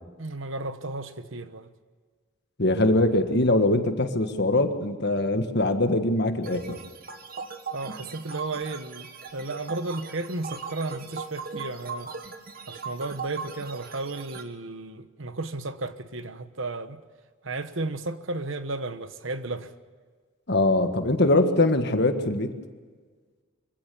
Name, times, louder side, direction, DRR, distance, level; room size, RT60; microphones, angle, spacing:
voice 1, 0.2-1.7 7.7-12.1 12.7-17.0 17.4-19.7, right 2 dB, 60° right, 1.1 m, -34 dB
voice 2, 2.6-6.8 20.5-22.5, left 2 dB, 50° left, 1.6 m, -22 dB
sound 1, 6.4-14.4, right 4 dB, 45° right, 1.6 m, -39 dB
24.5 x 16.5 x 7.0 m
head